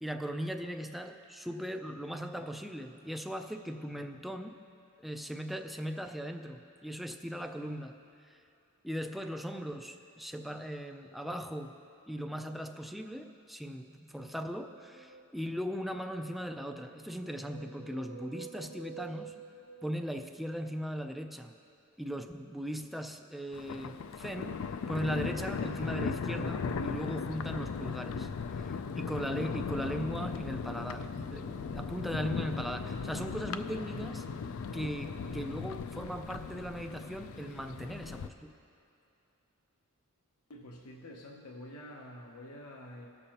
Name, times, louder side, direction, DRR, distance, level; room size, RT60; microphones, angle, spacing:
voice 1, 0.0-4.6 5.0-8.0 8.3-8.4 8.8-19.4 19.8-21.6 22.0-28.3 28.6-34.3 34.7-38.5, equal, ahead, 5 dB, 0.4 m, -38 dB
sound 1, 14.7-15.9 16.7-20.6, right 5 dB, 45° right, 0.9 m, -50 dB
Thunder, 23.5-38.3, left 5 dB, 65° left, 0.4 m, -37 dB
voice 2, 40.5-43.1, left 1 dB, 90° left, -1 dB, 0.8 m, -47 dB
19.5 x 6.8 x 2.9 m, 2.7 s
head